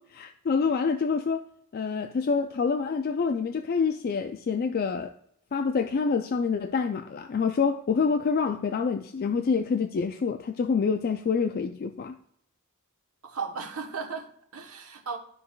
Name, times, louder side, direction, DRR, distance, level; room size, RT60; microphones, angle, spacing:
voice 1, 0.1-1.4 1.7-5.1 5.5-12.2, left 5 dB, 45° left, 0.3 m, -27 dB
voice 2, 13.2-15.2, right 5 dB, 80° right, 1.1 m, -36 dB
12.0 x 4.8 x 2.3 m
head